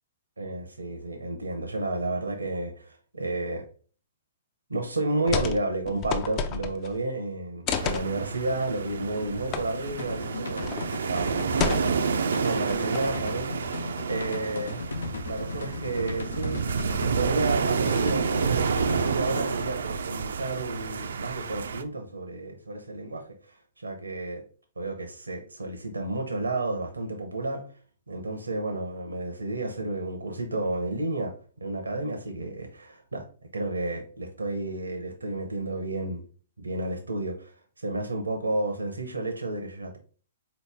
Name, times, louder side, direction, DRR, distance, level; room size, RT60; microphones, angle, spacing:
voice 1, 0.4-3.6 4.7-10.8 11.1-14.8 15.3-16.7 17.1-24.4 24.8-27.6 28.1-31.3 31.6-33.3 33.5-36.2 36.6-37.5 37.8-40.0, right 2 dB, 90° right, 0.7 m, -31 dB
sound 1, 5.3-5.6 5.9-7.0 7.7-8.1 9.5-9.6 10.0-10.1 10.6-10.9 11.6-12.2 12.7-13.2, left 6 dB, 35° left, 0.5 m, -30 dB
sound 2, 7.7-21.8, right 6 dB, 75° right, 0.4 m, -29 dB
sound 3, 9.8-19.7, left 3 dB, 80° left, 0.6 m, -36 dB
4.0 x 3.0 x 3.5 m
hypercardioid pair, 120°, 0 cm